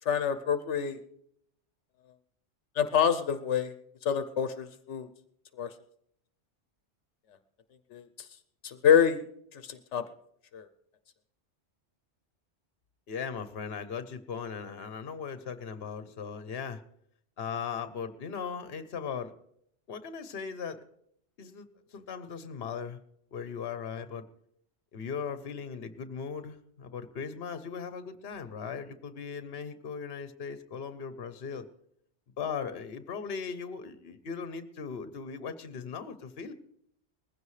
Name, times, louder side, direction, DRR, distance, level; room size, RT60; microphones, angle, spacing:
voice 1, 0.1-1.0 2.7-3.7 4.0-5.1 5.6-5.7 7.9-8.3 8.6-9.2 9.5-10.0 10.5-10.7, left 8 dB, 80° left, 9 dB, 1.0 m, -27 dB
voice 2, 13.1-16.8 17.4-19.3 19.9-20.8 21.4-21.7 21.9-23.0 23.3-24.2 24.9-31.7 32.4-36.5, left 6 dB, 60° left, 11 dB, 1.1 m, -38 dB
20.5 x 15.5 x 3.2 m, 0.72 s
omnidirectional pair, 1.2 m